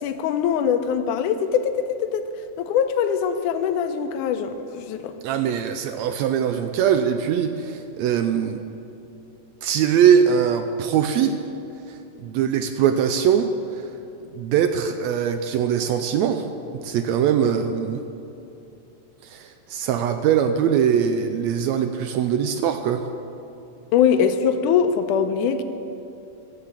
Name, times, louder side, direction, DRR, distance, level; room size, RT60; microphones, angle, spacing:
voice 1, 0.0-2.2 2.6-5.1 23.9-25.6, left 7 dB, 85° left, 9 dB, 2.2 m, -22 dB
voice 2, 5.2-8.6 9.6-11.4 11.9-13.5 14.4-16.4 16.7-18.0 19.2-23.1, right 8 dB, 80° right, 8 dB, 1.6 m, -21 dB
16.0 x 7.3 x 7.3 m, 2.8 s
omnidirectional pair, 3.5 m